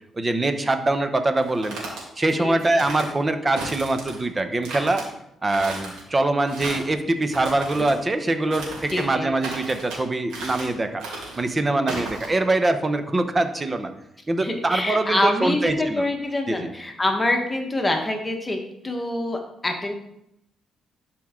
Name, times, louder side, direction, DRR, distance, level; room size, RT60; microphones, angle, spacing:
voice 1, 0.2-1.8 2.2-5.0 5.4-11.0 11.4-13.9 14.3-16.1 16.5-16.7, right 2 dB, 25° right, 8 dB, 0.9 m, -23 dB
sound 1, 1.4-2.0 2.6-3.1 3.6-4.2 4.6-5.0 5.5-6.0 6.4-6.9 7.3-8.0 8.5-9.1 9.4-10.0 10.3-10.7 11.0-11.4 11.9-12.3, right 2 dB, 90° right, 2.5 m, -35 dB
voice 2, 2.4-2.8 7.8-7.9 8.9-9.3 14.4-18.6 18.8-19.9, left 1 dB, 15° left, 3 dB, 1.4 m, -25 dB
11.5 x 4.6 x 3.8 m, 0.79 s
cardioid pair, 90°, 0 cm